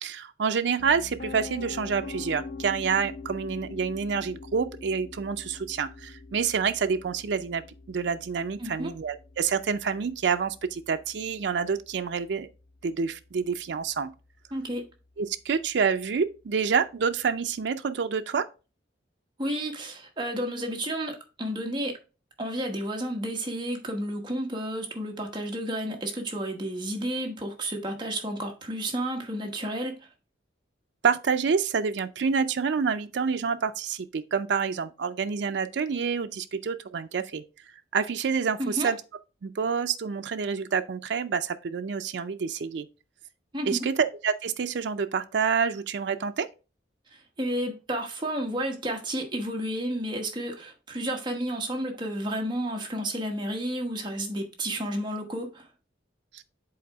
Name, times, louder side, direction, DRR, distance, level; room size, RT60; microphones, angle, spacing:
voice 1, 0.0-7.6 7.9-12.5 12.8-14.1 15.2-18.4 31.0-37.4 37.9-39.0 39.4-42.9 43.7-46.5 56.3-56.4, right 6 dB, 70° right, 0.4 m, -28 dB
Piano, 0.8-12.7, left 3 dB, 75° left, 0.5 m, -43 dB
voice 2, 8.6-8.9 14.5-14.8 19.4-22.0 22.4-30.0 38.6-38.9 43.5-43.9 47.1-55.7, right 1 dB, 25° right, 1.1 m, -31 dB
7.7 x 3.9 x 3.4 m
head